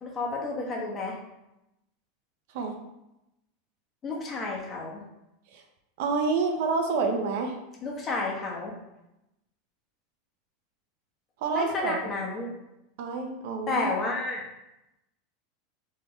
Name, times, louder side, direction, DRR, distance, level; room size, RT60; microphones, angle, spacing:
voice 1, 0.0-1.2 4.0-5.0 7.8-8.8 11.5-12.5 13.7-14.4, left 3 dB, 30° left, -2 dB, 1.1 m, -31 dB
voice 2, 6.0-7.6 11.4-12.0 13.0-13.9, right 4 dB, 70° right, 3 dB, 0.6 m, -28 dB
3.4 x 3.2 x 3.5 m, 0.90 s
hypercardioid pair, 105°, 0 cm